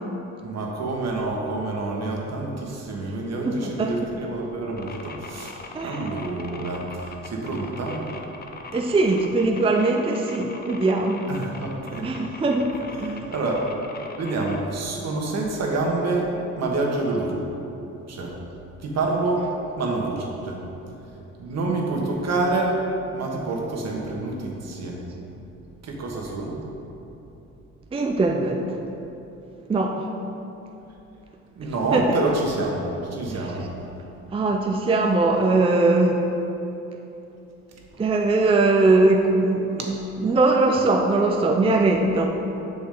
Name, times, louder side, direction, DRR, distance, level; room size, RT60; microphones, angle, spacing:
voice 1, 0.4-5.6 5.8-6.8 7.2-8.0 11.3-12.0 13.0-13.6 14.2-16.3 16.6-17.3 18.1-18.3 18.8-19.4 19.8-20.6 21.4-22.7 23.1-25.0 25.8-26.5 31.5-32.8 33.1-33.7, right 2 dB, 60° right, -1 dB, 1.4 m, -27 dB
voice 2, 3.4-3.9 5.7-6.2 8.7-11.3 12.0-13.3 27.9-28.6 29.7-30.1 31.9-32.2 33.3-33.5 34.3-36.2 38.0-42.3, right 2 dB, 20° right, 2 dB, 0.5 m, -21 dB
sound 1, 4.8-14.6, left 4 dB, 30° left, 0.6 m, -41 dB
7.4 x 6.1 x 3.9 m, 3.0 s
cardioid pair, 90°, 30 cm